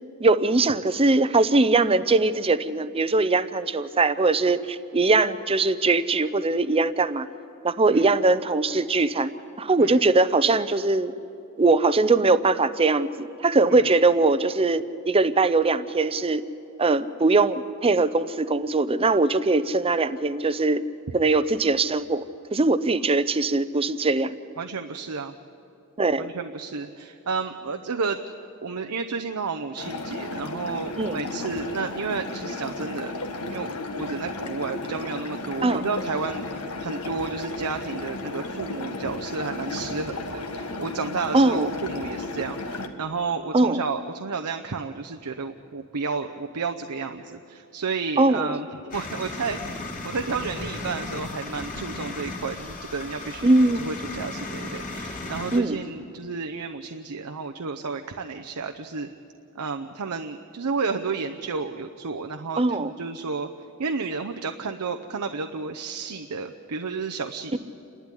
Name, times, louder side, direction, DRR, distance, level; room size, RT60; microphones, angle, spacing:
voice 1, 0.2-7.3 7.6-9.3 9.6-11.1 11.6-16.4 16.8-20.8 21.1-22.2 22.5-24.3 26.0-26.3 31.0-31.2 35.6-35.8 41.3-41.7 43.5-43.8 48.2-48.6 53.4-53.8 55.5-55.8 62.6-62.9 67.5-67.6, right 3 dB, 25° right, 14 dB, 0.6 m, -21 dB
voice 2, 24.6-25.3 26.2-28.2 28.6-33.1 33.5-49.6 50.0-59.1 59.5-63.5 63.8-67.6, right 4 dB, 90° right, 5 dB, 0.8 m, -31 dB
sound 1, 29.8-42.9, left 2 dB, 80° left, 1.6 m, -34 dB
sound 2, 48.9-55.6, left 2 dB, 35° left, 2.9 m, -35 dB
28.5 x 12.0 x 9.9 m, 2.7 s
head